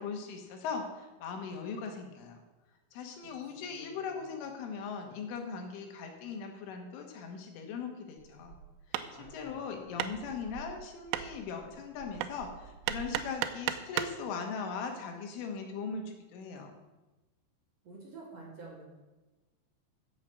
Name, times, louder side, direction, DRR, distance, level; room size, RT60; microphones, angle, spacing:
voice 1, 0.0-2.4 2.9-8.6 9.2-16.7, left 5 dB, 85° left, 3 dB, 4.2 m, -39 dB
voice 2, 3.6-4.2 9.0-9.7 17.8-18.8, right 3 dB, 40° right, -4 dB, 2.7 m, -50 dB
Hammer, 8.2-14.2, right 11 dB, 85° right, 3.2 m, -37 dB
15.0 x 7.2 x 6.4 m, 1.1 s
omnidirectional pair, 5.5 m